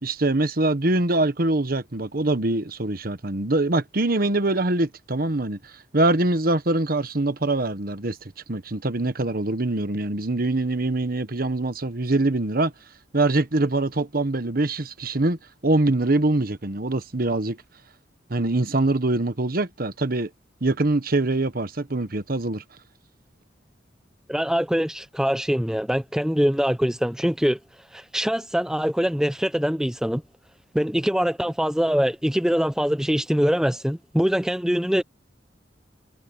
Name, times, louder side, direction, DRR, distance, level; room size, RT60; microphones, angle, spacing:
voice 1, 0.0-5.6 5.9-8.2 8.5-12.7 13.1-15.4 15.6-17.6 18.3-20.3 20.6-22.6, right 2 dB, 55° right, 1.3 m, -23 dB
voice 2, 24.3-27.6 27.9-30.2 30.7-35.0, equal, 5° right, 0.7 m, -23 dB
head